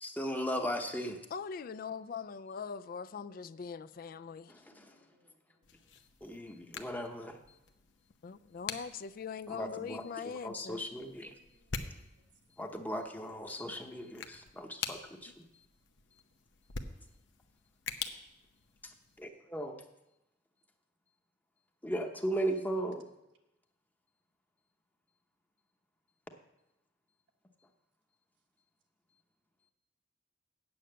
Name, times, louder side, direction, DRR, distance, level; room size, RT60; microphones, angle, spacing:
voice 1, 0.0-1.2 4.5-5.0 6.2-7.4 9.5-10.0 10.4-11.3 12.6-15.5 18.8-18.9 19.2-19.8 21.8-23.1, equal, 10° left, 0.8 m, -37 dB
voice 2, 1.3-4.5 8.2-10.9, left 6 dB, 50° left, 0.4 m, -42 dB
voice 3, 4.4-5.9 10.7-12.3, right 1 dB, 85° right, 1.4 m, -72 dB
sound 1, 5.6-19.3, left 5 dB, 90° left, 0.8 m, -46 dB
8.7 x 6.3 x 7.8 m
head